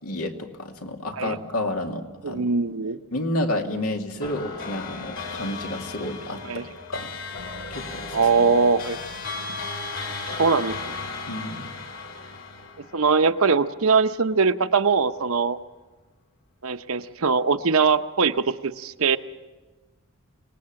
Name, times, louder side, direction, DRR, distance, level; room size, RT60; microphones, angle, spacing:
voice 1, 0.0-2.4 3.1-6.4 6.9-7.1 7.7-8.6 11.3-11.7, left 1 dB, 90° left, 3 dB, 2.4 m, -30 dB
voice 2, 2.2-3.0 6.4-6.6 8.1-9.0 10.4-11.0 12.9-15.6 16.6-19.2, right 5 dB, 70° right, 10 dB, 0.9 m, -21 dB
sound 1, 4.2-13.8, left 3 dB, 60° left, 2.6 m, -35 dB
26.0 x 19.5 x 7.6 m, 1.2 s
head